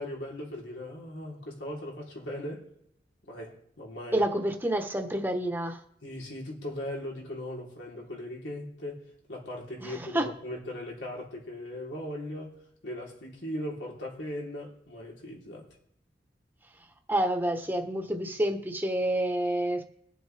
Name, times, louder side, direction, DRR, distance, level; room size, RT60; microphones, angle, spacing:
voice 1, 0.0-2.7 3.2-4.2 6.0-12.6 12.8-15.7, left 1 dB, 85° left, -3 dB, 3.6 m, -39 dB
voice 2, 4.1-5.8 9.8-10.3 17.1-19.8, right 1 dB, 10° right, 5 dB, 1.1 m, -28 dB
22.0 x 7.7 x 3.4 m, 0.73 s
head